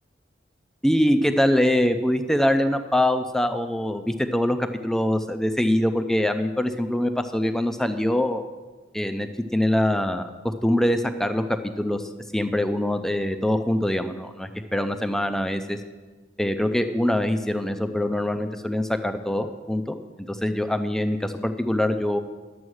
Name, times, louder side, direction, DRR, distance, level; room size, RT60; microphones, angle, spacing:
voice 1, 0.8-8.5 8.9-15.8 16.4-22.2, left 1 dB, 5° left, 8 dB, 0.5 m, -24 dB
11.0 x 7.5 x 6.3 m, 1.4 s
head